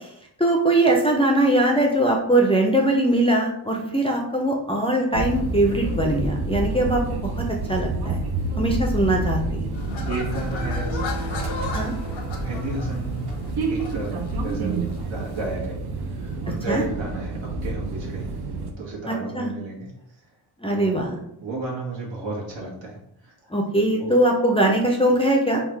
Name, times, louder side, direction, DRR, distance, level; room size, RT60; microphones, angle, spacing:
voice 1, 0.4-8.2 8.6-9.7 11.7-11.9 16.7-16.8 19.1-19.5 20.6-21.2 23.5-25.6, right 1 dB, 15° left, 0 dB, 0.5 m, -21 dB
sound 1, 5.1-18.7, right 2 dB, 55° right, 0.7 m, -28 dB
sound 2, 9.7-15.5, left 4 dB, 85° left, 0.8 m, -37 dB
voice 2, 10.1-11.8 12.4-13.3 13.7-15.8 16.0-18.3 18.8-19.9 20.7-23.5 24.0-24.2, right 2 dB, 75° right, -3 dB, 1.6 m, -33 dB
3.7 x 2.4 x 4.5 m, 0.76 s
wide cardioid pair, 135°, 46 cm